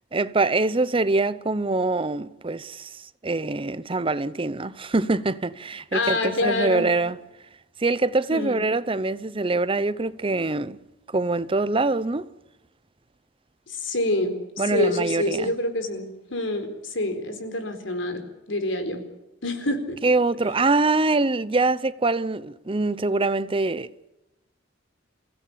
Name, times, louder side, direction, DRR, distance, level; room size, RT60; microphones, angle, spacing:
voice 1, 0.1-7.2 7.8-10.8 11.1-12.3 14.6-15.5 20.0-24.1, right 3 dB, 30° right, 0.7 m, -24 dB
voice 2, 5.9-6.9 8.3-8.6 13.7-19.0 19.4-20.0, left 2 dB, 85° left, 4.3 m, -27 dB
28.0 x 16.0 x 8.7 m
head